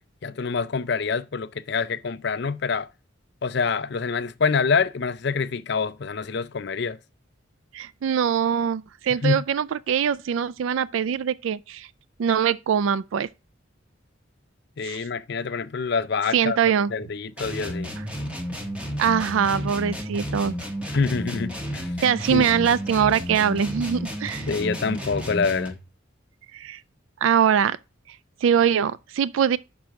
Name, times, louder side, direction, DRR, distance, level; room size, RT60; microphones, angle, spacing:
voice 1, 0.2-2.9 3.4-7.0 9.2-9.4 14.8-16.6 16.9-17.9 20.9-21.9 22.3-22.4 24.5-25.8, left 5 dB, 55° left, 0.5 m, -26 dB
voice 2, 7.7-11.9 12.2-13.3 14.8-15.1 16.3-16.9 19.0-20.5 22.0-24.5 26.5-26.8 27.2-27.8 28.4-29.6, right 8 dB, 75° right, 0.3 m, -22 dB
sound 1, 17.4-25.8, equal, 5° right, 1.2 m, -32 dB
6.0 x 4.6 x 6.4 m
head